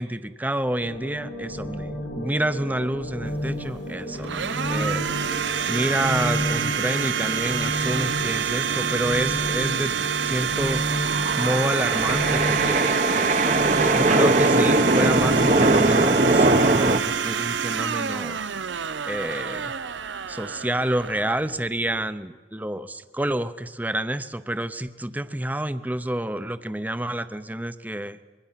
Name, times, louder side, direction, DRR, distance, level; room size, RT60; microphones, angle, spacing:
voice 1, 0.0-5.0 5.7-12.9 13.9-18.5 18.8-19.7 20.3-28.2, right 1 dB, 10° right, 12 dB, 0.6 m, -28 dB
sound 1, 0.8-16.3, equal, 90° left, 5.3 m, -32 dB
Domestic sounds home sounds, 3.3-22.1, right 7 dB, 85° right, 0.7 m, -28 dB
sound 2, 10.6-17.0, right 2 dB, 40° right, 0.9 m, -21 dB
24.5 x 22.0 x 5.8 m, 1.5 s
head